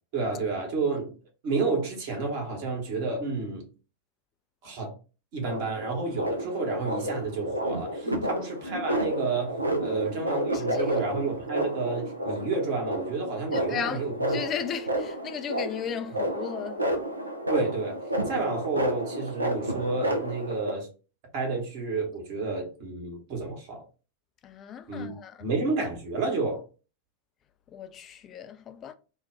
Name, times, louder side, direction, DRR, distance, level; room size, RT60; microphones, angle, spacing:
voice 1, 0.1-1.1 1.4-3.6 4.6-4.9 5.3-14.4 17.5-20.9 21.3-23.8 24.9-25.1 25.4-26.6, right 3 dB, 50° right, 1.2 m, -30 dB
sound 1, 5.4-20.7, right 1 dB, 85° right, 0.4 m, -31 dB
voice 2, 10.5-10.9 13.5-16.8 24.4-25.5 27.7-28.9, left 8 dB, 30° left, 0.3 m, -36 dB
2.6 x 2.2 x 3.4 m
figure-of-eight pair, 90°, 0 cm